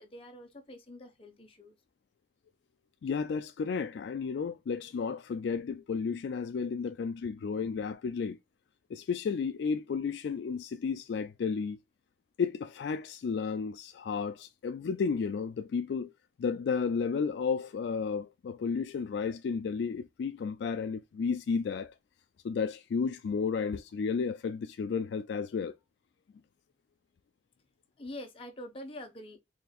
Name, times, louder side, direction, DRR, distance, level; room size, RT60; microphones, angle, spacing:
voice 1, 0.0-1.8 28.0-29.4, left 1 dB, 30° left, 0.8 m, -45 dB
voice 2, 3.0-8.4 8.9-11.8 12.4-16.1 16.4-21.9 22.4-25.8, left 5 dB, 75° left, 0.3 m, -32 dB
4.3 x 3.2 x 2.3 m
head